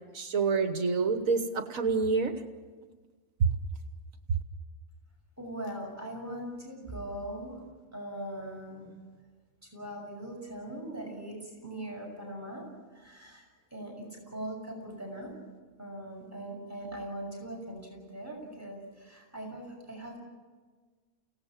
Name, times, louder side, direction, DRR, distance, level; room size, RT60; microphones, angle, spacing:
voice 1, 0.1-2.3, right 4 dB, 70° right, 8 dB, 1.6 m, -27 dB
voice 2, 5.4-7.6 7.9-8.9 9.6-12.6 12.9-13.4 13.7-13.9 14.3-15.3 15.8-20.2, right 1 dB, 10° right, -1 dB, 6.1 m, -40 dB
29.5 x 18.0 x 7.4 m, 1.4 s
omnidirectional pair, 1.5 m